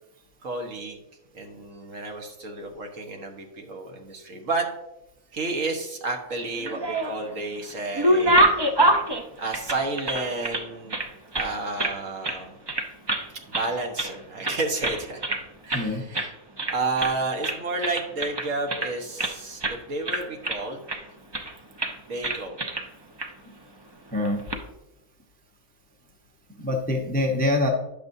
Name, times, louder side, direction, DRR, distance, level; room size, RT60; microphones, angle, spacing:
voice 1, 0.4-1.0 1.3-4.7 5.3-8.6 9.4-11.0 11.3-12.6 13.5-15.2 15.6-16.3 16.7-20.8 22.1-22.6, right 3 dB, 65° right, 2 dB, 1.5 m, -31 dB
sound 1, 6.5-7.3 7.7-10.6 10.9-12.0 12.2-12.4 12.7-13.3 13.5-14.1 14.4-15.4 15.7-15.9 16.1-16.3 16.6-17.2 17.4-19.3 19.6-19.8 20.0-21.0 21.3-21.5 21.8-21.9 22.2-22.8 23.2-23.3 24.2-24.6, right 1 dB, 30° right, 0.5 m, -25 dB
voice 2, 15.7-16.0 24.1-24.4 26.6-27.7, left 1 dB, 10° left, 1 dB, 0.7 m, -24 dB
10.5 x 6.9 x 2.7 m, 0.90 s
omnidirectional pair, 1.5 m